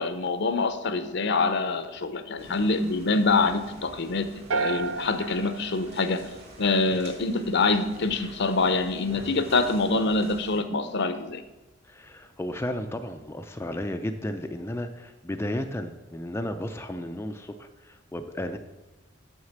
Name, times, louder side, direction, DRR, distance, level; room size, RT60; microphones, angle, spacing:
voice 1, 0.0-6.2 6.6-11.4, left 3 dB, 60° left, 10 dB, 0.7 m, -25 dB
sound 1, 2.4-10.6, right 1 dB, 55° right, 2.3 m, -46 dB
sound 2, 4.5-6.8, right 5 dB, 70° right, 0.4 m, -32 dB
voice 2, 11.8-18.6, left 1 dB, 10° left, 6 dB, 0.4 m, -33 dB
6.6 x 6.4 x 7.2 m, 1.1 s
head